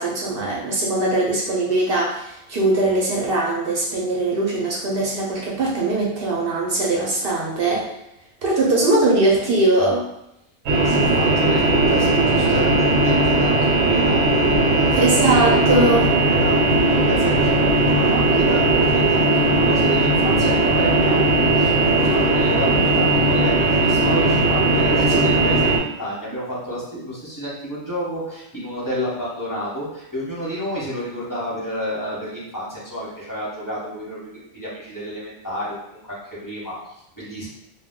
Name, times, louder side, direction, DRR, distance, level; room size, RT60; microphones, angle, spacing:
voice 1, 0.0-7.9 8.4-10.0 14.9-16.1, right 2 dB, 55° right, -4 dB, 0.7 m, -20 dB
sound 1, 10.7-25.8, right 2 dB, 75° right, 1.0 m, -18 dB
voice 2, 10.8-15.0 15.5-15.9 16.3-37.5, equal, 15° left, -9 dB, 0.9 m, -30 dB
2.2 x 2.2 x 3.6 m, 0.84 s
omnidirectional pair, 1.4 m